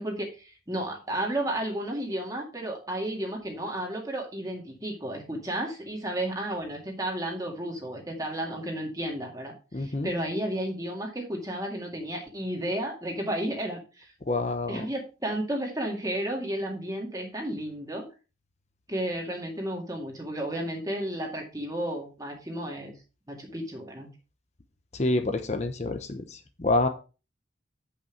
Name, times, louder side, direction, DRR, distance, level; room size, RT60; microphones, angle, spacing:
voice 1, 0.0-14.1 14.7-18.1 18.9-22.9 23.3-24.1, right 1 dB, 20° right, 1 dB, 2.1 m, -32 dB
voice 2, 9.7-10.1 14.3-14.9 24.9-26.9, left 2 dB, 35° left, 7 dB, 0.7 m, -27 dB
8.2 x 5.8 x 4.5 m, 0.32 s
head